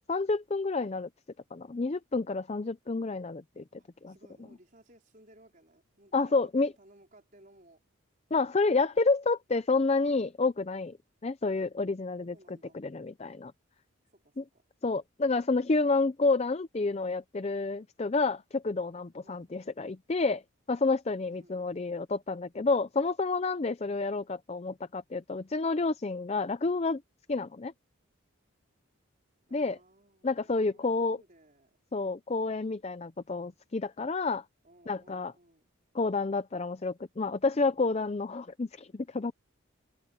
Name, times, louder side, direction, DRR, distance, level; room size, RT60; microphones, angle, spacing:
voice 1, 0.1-1.1 1.5-3.6 4.0-4.1 6.1-6.7 8.3-11.0 11.2-13.5 14.4-14.5 14.8-20.4 20.7-27.0 27.3-27.7 29.5-29.8 30.2-31.2 31.9-34.4 34.9-35.3 35.9-39.3, left 3 dB, 30° left, 0.5 m, -29 dB
voice 2, 3.8-7.8 12.2-12.8 14.1-14.6 19.2-19.5 21.3-21.9 29.5-31.8 34.6-35.6, right 1 dB, 40° right, 4.7 m, -60 dB
open air
head